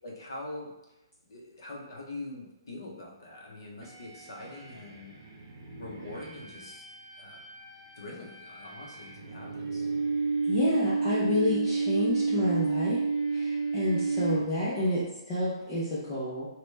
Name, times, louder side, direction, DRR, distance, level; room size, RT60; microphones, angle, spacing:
voice 1, 0.0-0.7 1.3-5.2 5.8-6.9 7.2-7.4 8.0-9.9, left 2 dB, 50° left, -2 dB, 0.7 m, -43 dB
sound 1, 3.8-14.9, right 4 dB, 45° right, 0.6 m, -31 dB
voice 2, 10.4-13.0 13.3-16.5, left 1 dB, 10° left, -9 dB, 0.3 m, -30 dB
2.9 x 2.1 x 3.2 m, 0.96 s
hypercardioid pair, 180°, 3 cm